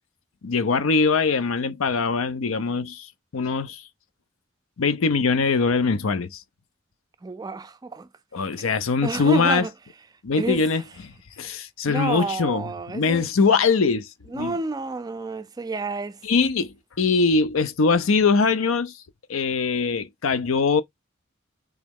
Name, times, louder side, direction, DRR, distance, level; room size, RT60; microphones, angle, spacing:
voice 1, 0.4-3.1 3.3-3.8 4.8-6.4 8.3-9.6 10.2-11.1 11.4-14.1 14.3-14.5 16.2-18.9 19.3-20.8, left 4 dB, 85° left, 0.6 m, -22 dB
voice 2, 7.2-8.1 8.6-8.7 9.0-9.7 10.3-10.6 11.9-13.3 14.3-16.2, right 3 dB, 20° right, 0.3 m, -30 dB
3.5 x 3.0 x 3.5 m
head